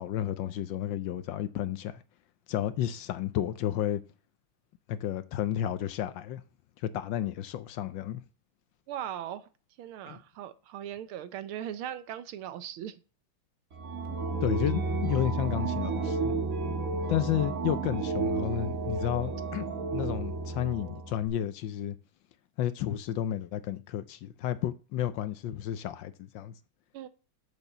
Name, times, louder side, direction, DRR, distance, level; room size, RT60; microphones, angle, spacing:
voice 1, 0.0-2.0 2.5-4.0 4.9-6.4 6.8-8.2 10.1-10.2 14.4-16.3 17.1-19.7 19.9-22.0 22.6-26.5, left 11 dB, 75° left, 1.2 m, -32 dB
voice 2, 8.9-9.5 9.8-13.0 26.9-27.1, right 10 dB, 80° right, 1.6 m, -39 dB
sound 1, 13.7-21.3, right 3 dB, 45° right, 1.5 m, -32 dB
7.2 x 6.3 x 6.7 m
omnidirectional pair, 2.3 m